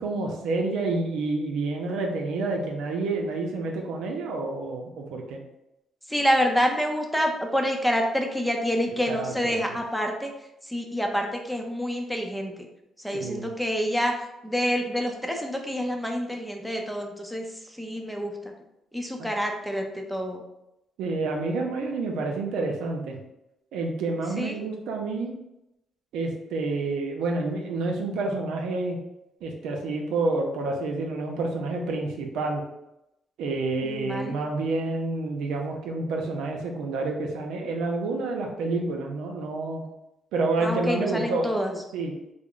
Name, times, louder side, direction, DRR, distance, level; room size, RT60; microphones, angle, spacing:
voice 1, 0.0-5.4 8.9-9.7 13.1-13.5 19.2-19.3 21.0-23.2 23.7-25.3 26.1-29.0 29.4-32.6 33.4-39.8 40.3-41.5 41.9-42.1, right 3 dB, 85° right, 1 dB, 0.6 m, -29 dB
voice 2, 6.1-10.3 10.7-12.5 13.0-14.1 14.4-17.4 17.8-18.3 18.9-20.4 24.4-24.6 33.8-34.4 40.6-41.7, equal, ahead, 2 dB, 0.6 m, -27 dB
3.5 x 2.1 x 3.8 m, 0.87 s
cardioid pair, 90°, 0 cm